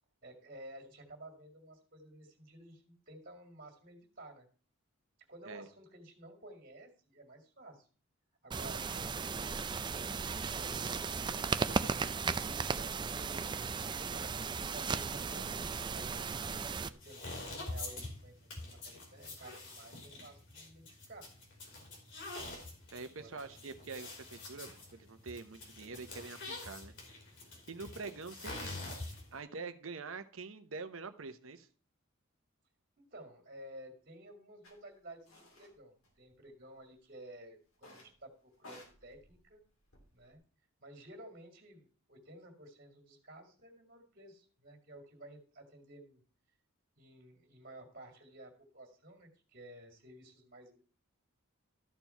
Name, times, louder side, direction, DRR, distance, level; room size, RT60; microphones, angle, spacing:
voice 1, 0.2-4.5 5.3-7.9 8.4-9.6 9.9-13.5 13.9-16.2 16.7-21.3 23.1-23.6 33.0-39.6 40.1-40.4 40.8-46.2 47.0-50.9, right 1 dB, 45° right, 3 dB, 2.2 m, -54 dB
sound 1, 8.5-16.9, right 5 dB, 20° right, 0.4 m, -36 dB
sound 2, 17.0-29.4, left 2 dB, 60° left, 3.4 m, -46 dB
voice 2, 22.9-26.9 27.7-28.8 29.3-31.7, right 4 dB, 65° right, 10 dB, 0.9 m, -45 dB
sound 3, 34.6-34.8 35.3-35.7 36.0-36.8 37.7-38.2 38.5-40.4, left 1 dB, 75° left, 3.2 m, -57 dB
13.0 x 4.6 x 5.7 m, 0.40 s
head